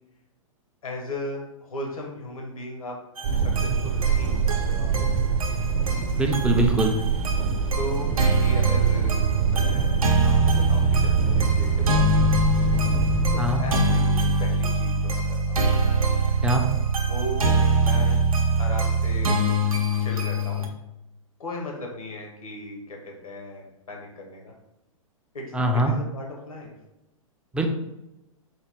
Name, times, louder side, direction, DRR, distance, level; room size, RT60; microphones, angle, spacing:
voice 1, 0.8-3.0 3.4-5.3 5.5-5.7 7.8-12.4 13.3-15.7 17.0-18.2 18.6-19.4 20.0-20.7 21.4-24.5 25.3-26.7, left 1 dB, 80° left, 0 dB, 0.8 m, -37 dB
sound 1, 3.2-13.4, right 6 dB, 50° right, 0.7 m, -25 dB
sound 2, 3.2-20.7, right 2 dB, 85° right, 0.6 m, -23 dB
voice 2, 6.2-7.0 13.4-13.6 16.4-16.7 25.5-25.9 27.5-27.7, right 1 dB, 5° right, 3 dB, 0.3 m, -22 dB
4.0 x 2.2 x 3.4 m, 0.93 s
hypercardioid pair, 115°, 18 cm